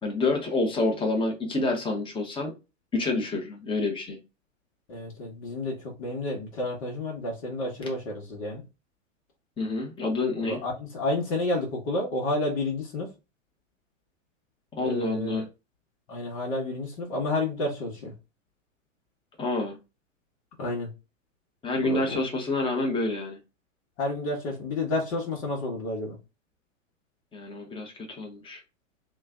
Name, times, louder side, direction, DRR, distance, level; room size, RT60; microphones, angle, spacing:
voice 1, 0.0-2.5 2.9-4.2 9.6-10.6 14.7-15.4 19.4-19.8 21.6-23.4 27.3-28.6, left 2 dB, 15° left, 2 dB, 1.0 m, -28 dB
voice 2, 4.9-8.6 10.4-13.1 14.8-15.4 16.1-18.1 20.6-20.9 21.8-22.2 24.0-26.2, left 2 dB, 55° left, -3 dB, 1.3 m, -30 dB
3.1 x 2.4 x 3.6 m, 0.27 s
figure-of-eight pair, 100°, 39 cm